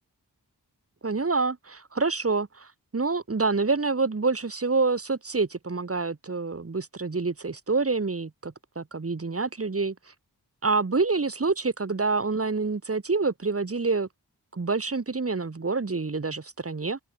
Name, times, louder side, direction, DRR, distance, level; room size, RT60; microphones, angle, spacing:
voice 1, 1.0-2.7 2.9-9.9 10.6-14.1 14.5-17.0, right 4 dB, 35° right, 1.1 m, -27 dB
open air
wide cardioid pair, 40°, 39 cm